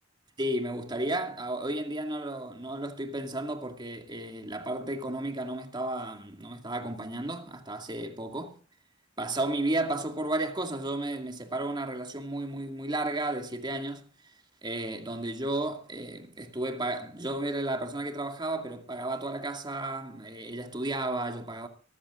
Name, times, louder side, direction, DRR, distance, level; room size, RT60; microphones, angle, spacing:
voice 1, 0.4-8.5 9.2-14.1 14.6-21.7, right 1 dB, 25° right, 2.2 m, -33 dB
25.0 x 14.5 x 2.5 m
head